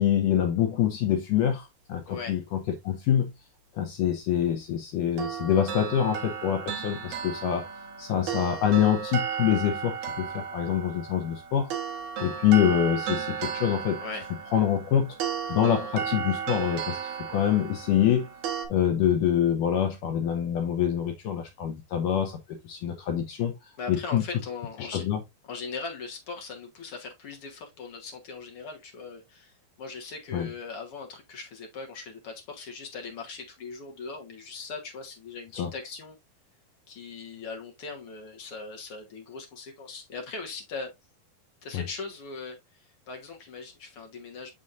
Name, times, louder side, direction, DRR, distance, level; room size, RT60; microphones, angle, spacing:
voice 1, 0.0-2.6 2.8-3.3 3.8-7.7 8.0-11.7 12.2-14.0 14.5-15.2 15.5-17.0 17.3-18.3 18.7-24.2 24.8-25.2 30.3-30.5 35.5-35.7 41.7-41.8, left 10 dB, 75° left, 2.1 m, -25 dB
voice 2, 2.1-2.4 14.0-14.3 23.8-25.1 25.4-36.2 36.9-40.9 41.6-44.5, left 4 dB, 60° left, 1.6 m, -40 dB
sound 1, 5.2-18.7, right 7 dB, 65° right, 2.3 m, -34 dB
7.0 x 6.3 x 2.5 m
omnidirectional pair, 4.3 m